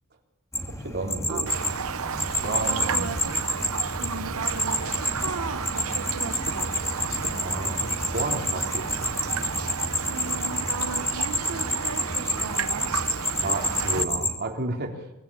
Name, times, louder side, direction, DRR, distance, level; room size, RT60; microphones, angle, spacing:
sound 1, 0.5-14.3, left 1 dB, 15° left, 2.9 m, -29 dB
voice 1, 0.7-1.5 2.4-3.2 7.3-9.1 13.4-15.1, right 2 dB, 50° right, 2 dB, 3.7 m, -32 dB
Raindrop, 1.5-14.0, right 6 dB, 65° right, 0.8 m, -33 dB
voice 2, 2.7-3.3 4.0-6.7 10.1-12.9, right 4 dB, 85° right, 6 dB, 1.4 m, -36 dB
25.0 x 20.0 x 8.7 m, 0.94 s
head